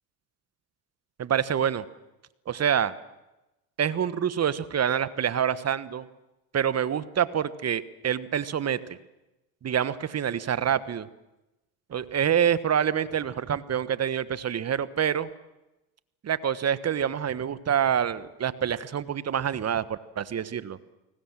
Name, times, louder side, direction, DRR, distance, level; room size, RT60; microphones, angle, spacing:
voice 1, 1.2-1.8 2.5-2.9 3.8-6.0 6.5-8.8 9.6-11.1 11.9-15.3 16.2-20.8, right 8 dB, 35° right, 15 dB, 1.3 m, -26 dB
29.5 x 19.5 x 7.5 m, 0.98 s
hypercardioid pair, 80°, 46 cm